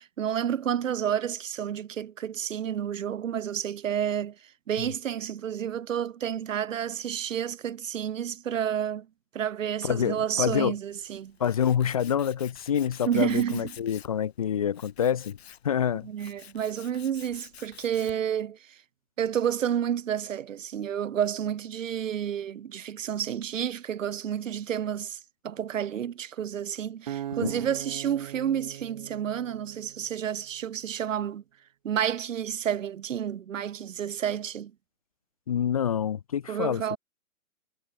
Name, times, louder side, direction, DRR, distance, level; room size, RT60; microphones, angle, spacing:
voice 1, 0.0-9.1 9.3-11.4 13.0-13.7 16.0-18.8 19.2-31.4 31.8-34.7 36.5-37.0, right 9 dB, 65° right, 1.2 m, -30 dB
voice 2, 9.8-10.7 11.4-15.4 15.6-16.1 27.4-27.5 35.5-37.0, left 8 dB, 25° left, 0.6 m, -27 dB
Tools, 10.9-18.4, left 9 dB, 50° left, 6.7 m, -50 dB
Acoustic guitar, 27.1-30.3, right 11 dB, 30° right, 1.0 m, -39 dB
hypercardioid pair, 165°, 41 cm